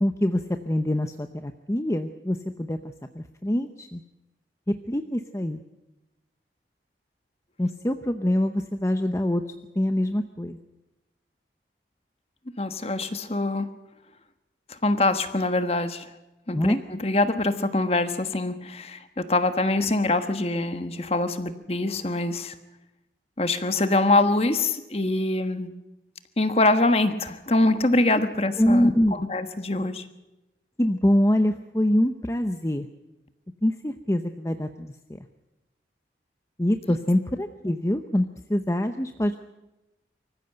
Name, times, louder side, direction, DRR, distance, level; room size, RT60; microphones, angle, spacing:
voice 1, 0.0-2.8 3.1-4.0 4.7-5.6 7.6-9.4 9.8-10.6 16.5-16.8 28.6-29.2 30.8-32.9 33.6-35.2 36.6-39.4, left 1 dB, 15° left, 7 dB, 0.7 m, -24 dB
voice 2, 12.6-13.7 14.7-16.1 16.5-22.5 23.4-25.7 26.4-30.1, left 2 dB, 35° left, 9 dB, 1.3 m, -24 dB
24.5 x 15.0 x 7.9 m, 0.99 s
head